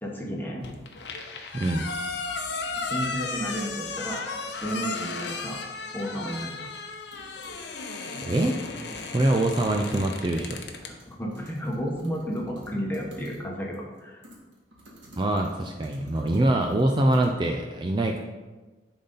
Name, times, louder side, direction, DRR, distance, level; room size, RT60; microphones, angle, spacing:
voice 1, 0.0-0.7 2.7-4.2 4.6-5.6 5.9-6.6 10.8-14.2, equal, 10° left, -1 dB, 1.1 m, -32 dB
sound 1, 0.6-10.9, left 4 dB, 70° left, 0.8 m, -35 dB
voice 2, 1.5-1.8 8.3-8.6 9.1-10.6 15.2-18.2, right 1 dB, 25° right, 3 dB, 0.4 m, -24 dB
sound 2, 1.7-4.8 5.2-5.6 6.0-6.1 6.6-6.7 7.1-7.7 7.9-8.0 8.3-13.4 13.7-17.3, equal, 90° right, 1.9 m, -51 dB
10.0 x 4.0 x 3.9 m, 1.2 s
head